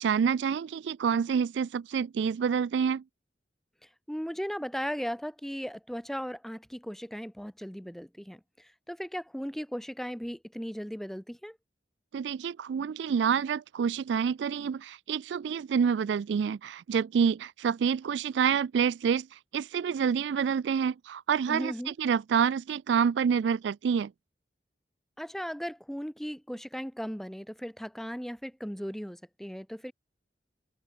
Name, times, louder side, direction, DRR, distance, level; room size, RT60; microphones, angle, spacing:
voice 1, 0.0-3.0 12.1-24.1, right 7 dB, 70° right, 0.3 m, -28 dB
voice 2, 3.8-11.6 21.5-21.9 25.2-29.9, equal, ahead, 1.5 m, -37 dB
head